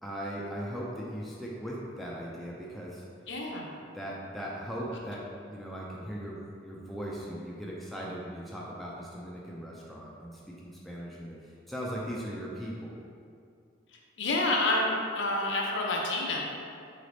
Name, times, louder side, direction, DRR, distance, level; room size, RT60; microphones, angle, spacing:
voice 1, 0.0-3.0 3.9-5.2 5.5-12.9, equal, ahead, -5 dB, 0.4 m, -39 dB
voice 2, 3.3-3.7 14.2-16.4, left 2 dB, 60° left, -1 dB, 0.6 m, -28 dB
4.0 x 3.2 x 3.9 m, 2.4 s
head